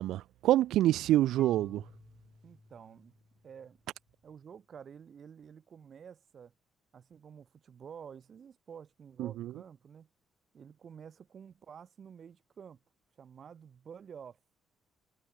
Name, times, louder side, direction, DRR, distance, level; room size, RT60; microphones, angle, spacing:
voice 1, 0.0-1.8 9.2-9.5, right 14 dB, 85° right, 0.3 m, -27 dB
Marimba xylophone / Wood, 1.4-4.2, left 3 dB, 25° left, 2.5 m, -57 dB
voice 2, 2.4-3.1 3.4-3.8 4.2-6.5 6.9-10.1 10.5-12.8 13.2-14.4, right 7 dB, 50° right, 2.0 m, -50 dB
cardioid pair, 90°, 0 cm